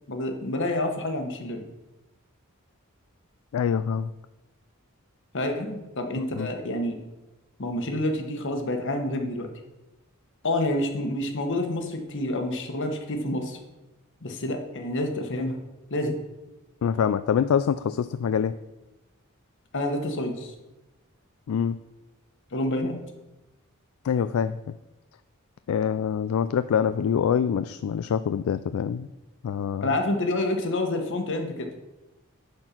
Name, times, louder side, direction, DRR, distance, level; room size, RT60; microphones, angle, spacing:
voice 1, 0.1-1.6 5.3-6.9 7.6-9.5 10.4-13.6 14.2-15.6 15.9-16.2 19.7-20.5 22.5-22.9 29.8-31.7, left 1 dB, 60° left, 4 dB, 1.2 m, -28 dB
voice 2, 3.5-4.1 6.2-6.5 16.8-18.5 21.5-21.8 24.0-24.7 25.7-29.1 29.4-29.9, left 7 dB, 75° left, 12 dB, 0.3 m, -25 dB
10.5 x 4.4 x 5.8 m, 1.1 s
head